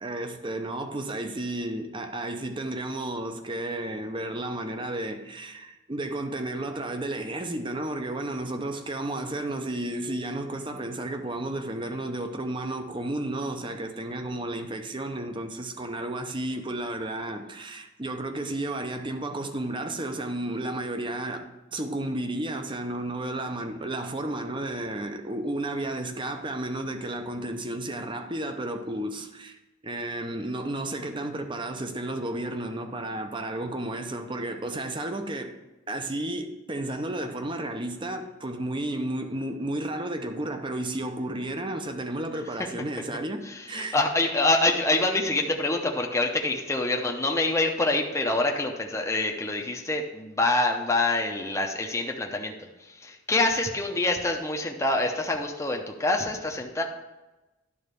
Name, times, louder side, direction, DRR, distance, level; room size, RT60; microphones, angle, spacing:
voice 1, 0.0-29.6 29.8-35.6 35.9-44.0, right 1 dB, 25° right, 0.7 m, -32 dB
voice 2, 43.7-52.5 53.0-56.8, left 2 dB, 15° left, 0.7 m, -26 dB
11.0 x 3.9 x 6.7 m
head